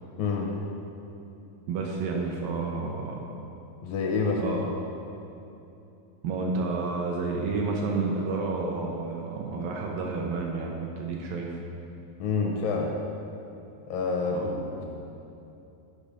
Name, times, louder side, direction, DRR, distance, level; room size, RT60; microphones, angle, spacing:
voice 1, 0.2-0.5 3.8-4.7 12.2-12.9 13.9-14.8, left 4 dB, 75° left, -1 dB, 2.1 m, -28 dB
voice 2, 1.7-3.2 4.4-4.7 6.2-11.5 14.3-14.8, right 3 dB, 75° right, -1 dB, 2.2 m, -30 dB
11.0 x 5.2 x 4.9 m, 2.9 s
omnidirectional pair, 4.5 m